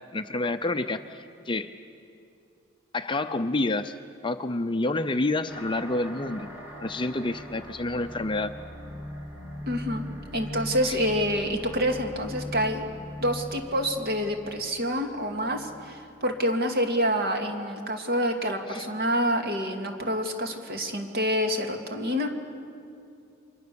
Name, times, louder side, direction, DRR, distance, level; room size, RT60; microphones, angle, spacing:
voice 1, 0.1-1.7 2.9-4.0 4.2-6.5 6.8-8.5 10.9-11.0 18.7-18.8, left 2 dB, 25° left, 8 dB, 0.6 m, -28 dB
sound 1, 5.5-16.5, equal, 10° right, 2.6 m, -41 dB
voice 2, 9.7-10.0 10.3-12.9 13.2-22.3, equal, 45° right, 4 dB, 2.4 m, -27 dB
29.5 x 24.5 x 7.0 m, 2.5 s
head